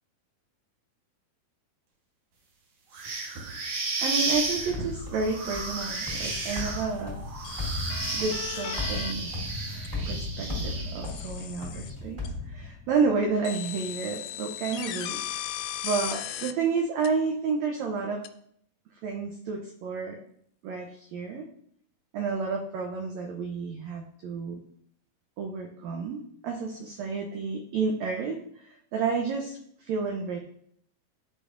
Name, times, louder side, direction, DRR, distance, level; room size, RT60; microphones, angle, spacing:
sound 1, 2.9-11.2, right 3 dB, 60° right, 1.8 m, -33 dB
voice 1, 4.0-7.2 8.1-9.3 10.1-15.4 15.8-18.2 19.0-20.2 20.6-21.5 22.1-24.6 25.4-30.4, right 5 dB, 80° right, 2 dB, 1.6 m, -30 dB
sound 2, 4.3-13.1, left 2 dB, 15° right, 1.4 m, -36 dB
sound 3, 6.3-6.6 7.5-9.1 9.9-10.0 11.1-11.9 12.3-12.4 13.4-16.5 17.0-17.1 18.2-18.3, left 12 dB, 85° left, 2.1 m, -37 dB
11.5 x 4.3 x 2.5 m, 0.69 s
omnidirectional pair, 3.8 m